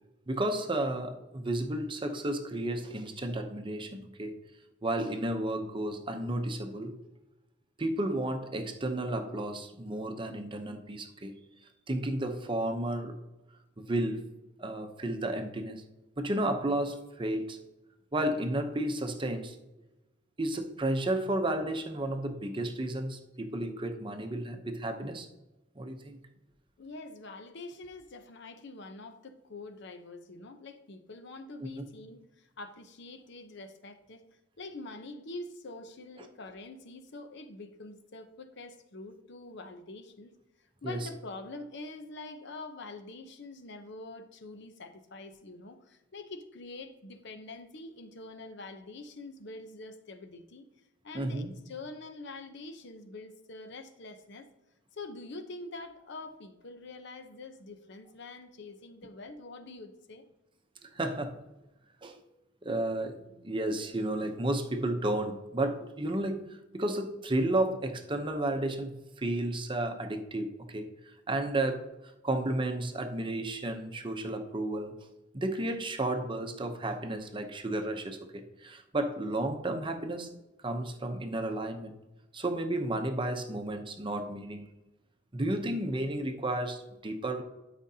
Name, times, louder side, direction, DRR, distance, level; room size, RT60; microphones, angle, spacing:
voice 1, 0.3-4.4 4.8-7.0 7.8-11.4 11.9-13.2 13.8-14.3 14.6-15.8 16.2-17.6 18.1-19.6 20.4-25.3 25.8-26.2 40.8-41.1 51.1-51.5 60.8-61.4 62.0-62.2 62.6-70.9 71.3-71.9 72.2-75.1 75.3-80.3 80.6-81.9 82.3-84.7 85.3-87.4, right 1 dB, 25° right, 0.7 m, -32 dB
voice 2, 26.8-34.2 34.6-40.3 40.8-50.7 51.0-54.5 54.9-60.2, left 2 dB, 60° left, 0.8 m, -45 dB
12.0 x 5.1 x 2.8 m
head